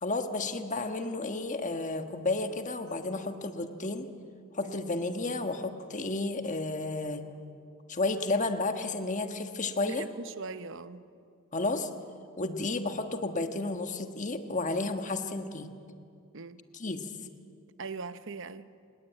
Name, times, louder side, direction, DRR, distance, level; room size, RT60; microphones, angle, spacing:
voice 1, 0.0-4.1 4.5-7.2 7.9-10.0 11.5-11.9 12.4-15.7 16.7-17.1, left 2 dB, 35° left, 7 dB, 1.4 m, -32 dB
voice 2, 9.9-11.1 16.3-16.6 17.8-18.7, right 4 dB, 60° right, 13 dB, 0.9 m, -40 dB
26.0 x 19.5 x 9.0 m, 2.3 s
head